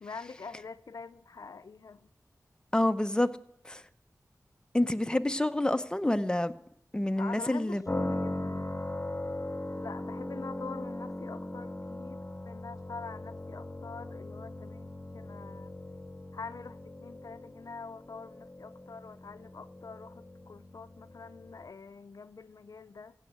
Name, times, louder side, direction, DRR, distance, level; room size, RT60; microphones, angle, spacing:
voice 1, 0.0-2.1 7.2-8.8 9.7-15.7 16.3-23.1, left 4 dB, 75° left, 0.5 m, -45 dB
voice 2, 2.7-3.3 3.6-3.8 4.7-6.5 6.9-7.8, left 1 dB, 15° left, 0.7 m, -27 dB
sound 1, 7.8-21.7, left 1 dB, 30° left, 1.5 m, -39 dB
16.0 x 6.4 x 8.2 m
wide cardioid pair, 50°, 6 cm